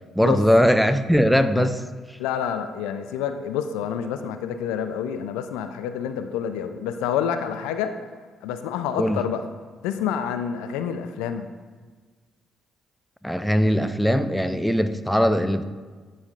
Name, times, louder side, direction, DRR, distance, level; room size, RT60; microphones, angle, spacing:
voice 1, 0.2-1.8 9.0-9.2 13.2-15.6, equal, ahead, 9 dB, 0.4 m, -20 dB
voice 2, 2.2-7.9 8.4-9.4 9.8-11.5, left 8 dB, 80° left, 8 dB, 0.3 m, -28 dB
9.5 x 5.1 x 2.5 m, 1.4 s
hypercardioid pair, 50°, 0 cm